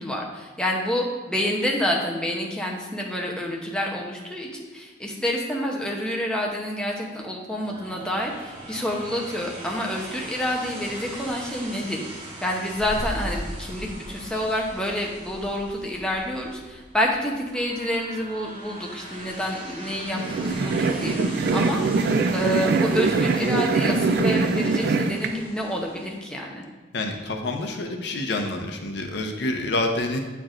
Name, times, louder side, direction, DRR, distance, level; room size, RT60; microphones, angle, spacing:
voice 1, 0.0-26.6, equal, 5° left, -1 dB, 0.7 m, -28 dB
sound 1, 7.5-16.7 17.5-26.2, right 1 dB, 30° right, 1.1 m, -41 dB
sound 2, 12.7-18.3, equal, 20° left, 1.0 m, -38 dB
sound 3, 20.1-25.3, right 3 dB, 55° right, 0.4 m, -23 dB
voice 2, 26.9-30.2, left 2 dB, 65° left, 4 dB, 0.7 m, -27 dB
8.6 x 4.6 x 2.5 m, 1.3 s
head